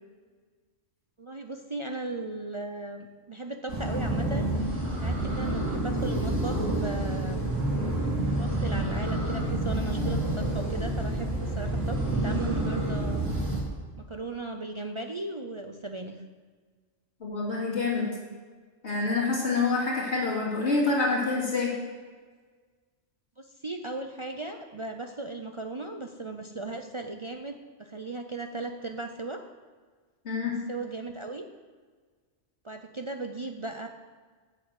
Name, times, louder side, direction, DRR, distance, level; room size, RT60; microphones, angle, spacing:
voice 1, 1.2-4.5 5.0-7.4 8.3-13.2 14.0-16.2 23.4-29.4 30.4-31.5 32.6-33.9, right 2 dB, 40° right, 5 dB, 0.4 m, -37 dB
sound 1, 3.7-13.6, right 1 dB, 80° right, 3.0 m, -28 dB
voice 2, 17.2-18.1 18.8-21.7 30.2-30.6, left 3 dB, 60° left, -4 dB, 2.8 m, -27 dB
7.9 x 7.4 x 7.7 m, 1.5 s
omnidirectional pair, 1.3 m